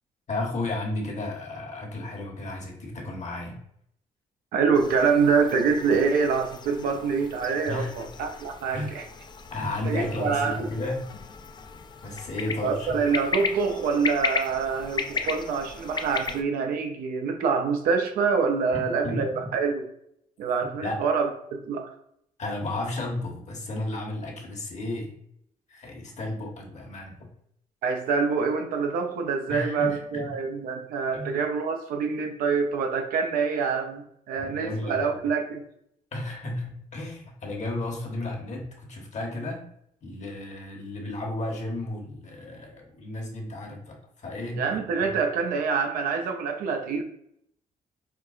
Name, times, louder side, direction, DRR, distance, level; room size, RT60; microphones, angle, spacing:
voice 1, 0.3-3.6 7.7-7.9 8.7-8.9 9.5-11.0 12.0-12.9 18.7-19.5 20.8-21.0 22.4-25.1 25.7-27.3 29.5-30.3 31.1-31.4 34.3-35.2 36.1-39.7 40.0-44.8 45.1-45.2, left 2 dB, 55° left, 1 dB, 1.1 m, -33 dB
voice 2, 4.5-9.0 9.8-10.6 12.6-19.9 20.4-21.9 27.8-35.6 44.6-47.0, right 5 dB, 80° right, 4 dB, 0.5 m, -26 dB
sound 1, 4.7-16.4, left 5 dB, 30° left, 0.3 m, -35 dB
4.6 x 2.3 x 2.4 m, 0.72 s
cardioid pair, 70°, 15 cm